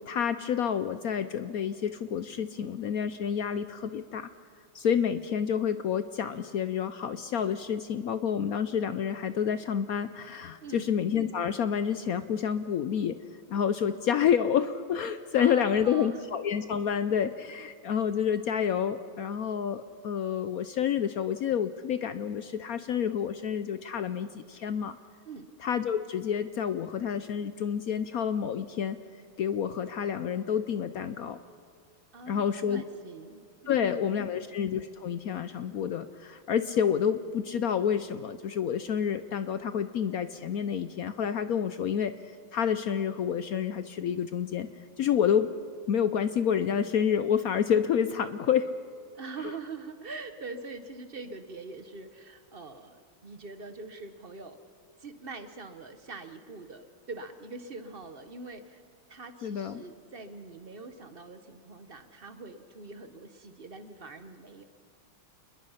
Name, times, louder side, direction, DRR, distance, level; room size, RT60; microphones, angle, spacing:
voice 1, 0.0-4.3 4.7-13.2 13.5-25.0 25.6-29.0 29.4-31.4 32.3-32.8 33.7-42.1 42.5-44.7 45.0-45.5 45.9-48.7 59.4-59.8, left 8 dB, 75° left, 12 dB, 0.8 m, -29 dB
voice 2, 10.6-10.9 15.3-16.2 25.2-25.5 32.1-34.5 49.1-54.6 55.0-58.8 59.1-64.6, right 3 dB, 40° right, 9 dB, 0.9 m, -43 dB
28.0 x 21.0 x 5.7 m, 2.3 s
omnidirectional pair, 2.3 m